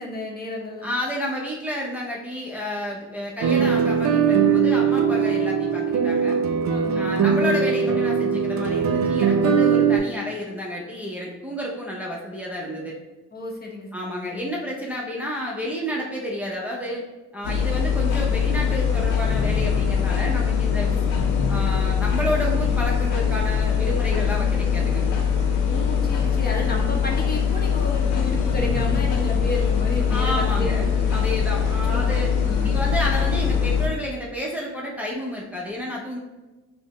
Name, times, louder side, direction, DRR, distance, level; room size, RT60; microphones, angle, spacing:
voice 1, 0.0-0.9 6.7-7.6 13.3-14.6 20.7-21.2 25.7-31.1 31.5-31.6 31.9-32.8, left 1 dB, 30° left, 0 dB, 0.8 m, -32 dB
voice 2, 0.8-6.4 6.9-12.9 13.9-17.0 17.3-21.0 21.5-25.0 30.1-32.3 32.6-36.2, equal, 5° right, -4 dB, 0.6 m, -30 dB
sound 1, 3.4-10.0, right 6 dB, 70° right, 0.5 m, -20 dB
sound 2, 17.4-33.9, left 7 dB, 85° left, 0.6 m, -22 dB
5.3 x 2.1 x 3.0 m, 1.1 s
cardioid pair, 90°, 30 cm